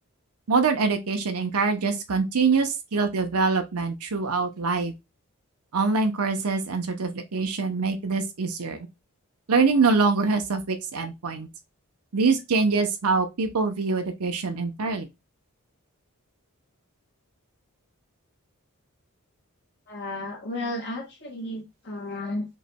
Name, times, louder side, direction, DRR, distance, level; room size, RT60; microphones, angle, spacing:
voice 1, 0.5-4.9 5.7-8.9 9.5-11.5 12.1-15.1, right 4 dB, 85° right, 0.8 m, -24 dB
voice 2, 19.9-22.5, left 1 dB, 55° left, 1.7 m, -33 dB
5.5 x 3.1 x 2.2 m
head